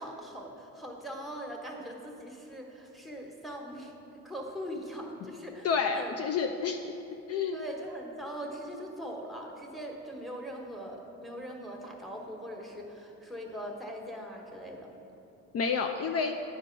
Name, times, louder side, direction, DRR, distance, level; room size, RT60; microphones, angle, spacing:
voice 1, 0.0-3.9 4.2-6.1 7.5-14.9, equal, ahead, 0 dB, 1.3 m, -41 dB
voice 2, 5.6-6.8 7.3-7.6 15.5-16.4, left 5 dB, 50° left, 5 dB, 0.5 m, -29 dB
10.5 x 4.6 x 4.5 m, 3.0 s
cardioid pair, 80°, 32 cm